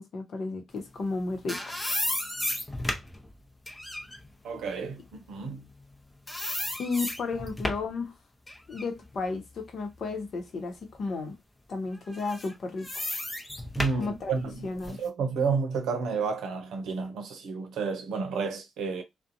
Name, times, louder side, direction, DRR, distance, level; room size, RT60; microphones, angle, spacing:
voice 1, 0.0-1.8 6.8-8.1 8.7-11.4 11.7-13.1 14.0-14.4 14.6-15.0, left 3 dB, 60° left, 0.8 m, -33 dB
sound 1, 1.0-6.0 6.3-8.0 8.5-10.4 10.9-11.0 12.1-15.1, left 1 dB, 20° left, 0.7 m, -34 dB
voice 2, 4.4-5.0 5.3-5.6 13.8-19.0, right 5 dB, 70° right, 0.6 m, -31 dB
2.5 x 2.2 x 2.6 m
hypercardioid pair, 40°, 0 cm